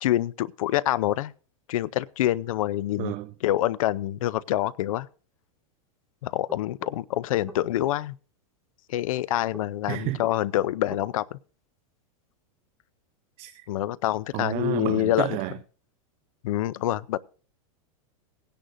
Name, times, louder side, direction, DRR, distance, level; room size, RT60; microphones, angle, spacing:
voice 1, 0.0-1.3 1.7-3.1 3.4-5.1 6.2-8.1 8.9-11.4 13.7-15.4 16.4-17.2, left 14 dB, 75° left, 0.6 m, -26 dB
voice 2, 3.0-3.3 9.9-10.2 13.4-13.7 14.3-15.6, right 17 dB, 40° right, 0.6 m, -30 dB
sound 1, 6.5-7.9 9.5-11.1, right 1 dB, ahead, 1.9 m, -43 dB
19.0 x 10.0 x 2.6 m
supercardioid pair, 150°, 17 cm